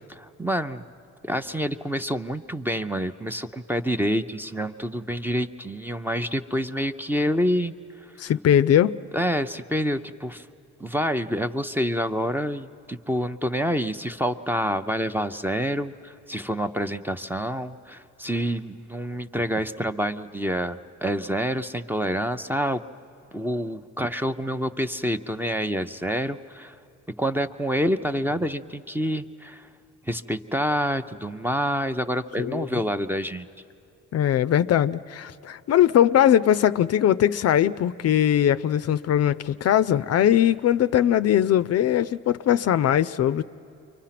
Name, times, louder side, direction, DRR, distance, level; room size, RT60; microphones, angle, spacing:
voice 1, 0.1-0.8 1.2-8.1 9.1-10.5 10.8-22.8 23.3-26.8 27.2-29.7 30.0-33.5, equal, 5° right, 9 dB, 0.6 m, -27 dB
voice 2, 8.2-9.0 32.4-32.7 34.1-43.4, left 10 dB, 55° left, 14 dB, 0.5 m, -20 dB
29.0 x 24.0 x 5.9 m, 2.6 s
cardioid pair, 90°, 30 cm